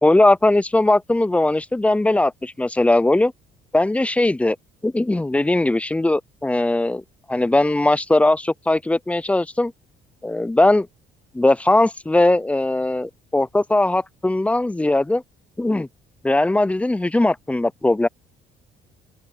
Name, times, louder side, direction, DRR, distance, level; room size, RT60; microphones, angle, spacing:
voice 1, 0.0-3.3 3.7-4.6 4.8-7.0 7.3-9.7 10.2-10.9 11.3-15.2 15.6-15.9 16.2-18.1, left 2 dB, 10° left, 0.5 m, -19 dB
open air
cardioid pair, 110°, 17 cm